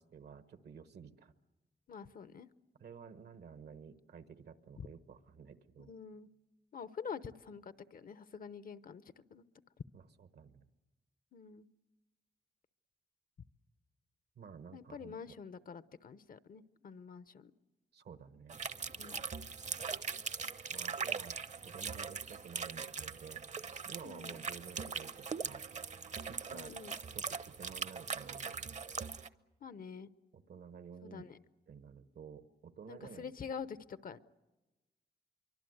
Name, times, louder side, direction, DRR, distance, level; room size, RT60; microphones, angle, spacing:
voice 1, 0.0-1.3 2.8-5.9 9.9-10.6 14.3-15.3 17.9-18.6 20.7-21.4 21.6-23.4 23.8-25.7 26.3-26.7 27.1-28.8 30.3-31.3 31.7-33.3, right 6 dB, 80° right, 10 dB, 1.3 m, -52 dB
voice 2, 1.9-2.5 4.8-4.9 5.9-6.3 6.7-9.4 11.3-11.7 14.7-17.5 19.0-19.2 24.0-24.4 26.5-26.9 29.6-30.1 31.0-31.4 32.9-34.2, left 6 dB, 60° left, 14 dB, 0.9 m, -47 dB
sound 1, 18.5-29.3, right 5 dB, 45° right, 0.8 m, -41 dB
25.5 x 24.0 x 8.0 m, 1.1 s
cardioid pair, 80°, 17 cm